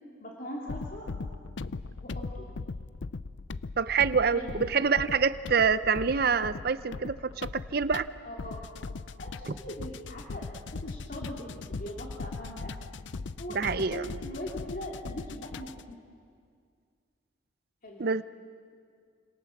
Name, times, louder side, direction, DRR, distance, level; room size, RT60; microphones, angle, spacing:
voice 1, 0.2-1.1 2.0-2.5 4.3-4.7 8.2-8.7 9.2-12.7 13.4-13.6 13.9-16.0 17.8-18.1, equal, 45° left, -2 dB, 2.9 m, -41 dB
sound 1, 0.7-15.9, left 3 dB, 70° left, 0.6 m, -39 dB
voice 2, 3.8-8.1 13.5-14.1 18.0-18.2, right 5 dB, 50° right, 13 dB, 0.6 m, -26 dB
29.0 x 27.0 x 7.2 m, 2.2 s
head